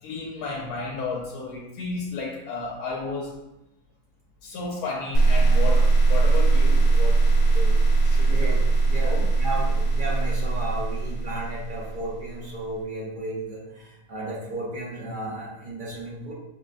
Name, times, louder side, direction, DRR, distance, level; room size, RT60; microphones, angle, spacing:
voice 1, 0.0-3.3 4.4-7.2 7.5-8.6 9.0-9.3, left 3 dB, 80° left, -1 dB, 1.1 m, -33 dB
sound 1, 5.1-12.3, right 3 dB, 50° left, 1.1 m, -20 dB
voice 2, 8.2-16.3, right 1 dB, 45° right, -4 dB, 0.7 m, -34 dB
5.8 x 2.2 x 2.4 m, 0.90 s
omnidirectional pair, 1.6 m